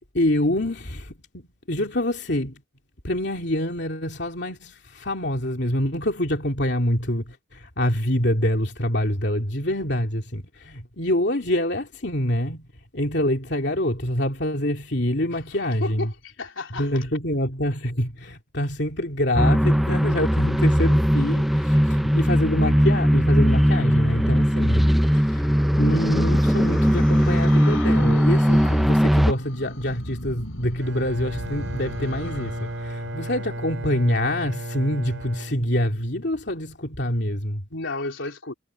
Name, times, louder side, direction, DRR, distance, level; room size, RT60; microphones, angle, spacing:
voice 1, 0.1-2.6 3.0-12.7 12.9-16.1 16.7-37.6, left 1 dB, 55° left, 3.0 m, -26 dB
voice 2, 15.8-16.9 21.7-21.8 37.7-38.5, left 2 dB, 75° left, 3.6 m, -32 dB
sound 1, 19.3-29.3, equal, ahead, 0.5 m, -19 dB
sound 2, 25.3-34.1, left 2 dB, 90° left, 5.2 m, -40 dB
Bowed string instrument, 30.8-36.3, right 1 dB, 65° right, 6.3 m, -34 dB
head